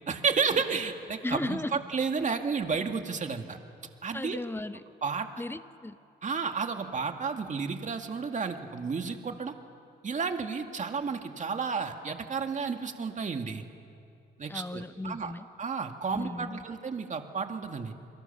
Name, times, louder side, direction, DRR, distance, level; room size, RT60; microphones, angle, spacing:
voice 1, 0.1-3.6 4.0-4.4 5.0-5.3 6.2-9.5 10.0-13.6 14.4-15.3 15.6-17.9, right 5 dB, 40° right, 5 dB, 2.2 m, -32 dB
voice 2, 1.2-1.8 4.1-4.8 5.4-6.0 14.5-15.5 16.1-16.6, left 2 dB, 10° left, 12 dB, 0.8 m, -36 dB
29.5 x 23.0 x 7.2 m, 2.5 s
cardioid pair, 90°, 20 cm